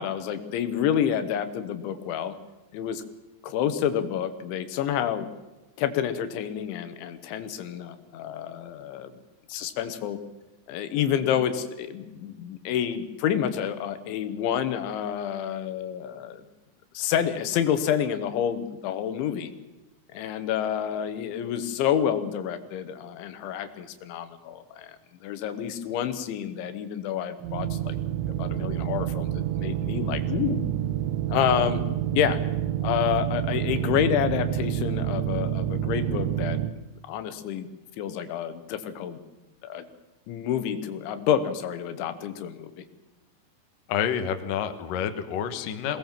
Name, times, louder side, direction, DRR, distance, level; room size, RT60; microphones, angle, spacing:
voice 1, 0.0-2.4 2.7-3.0 3.4-5.3 5.8-9.1 9.5-10.2 10.7-16.4 17.0-19.5 20.1-25.0 25.2-28.0 28.4-30.7 31.3-31.8 32.1-32.4 32.8-36.6 37.1-37.7 38.0-39.2 39.6-39.9 40.3-42.7, left 9 dB, 80° left, 11 dB, 3.6 m, -28 dB
sound 1, 27.4-36.7, right 11 dB, 90° right, 3.5 m, -28 dB
voice 2, 43.9-46.0, left 8 dB, 65° left, 8 dB, 2.5 m, -28 dB
22.0 x 18.5 x 7.5 m, 1.1 s
omnidirectional pair, 5.3 m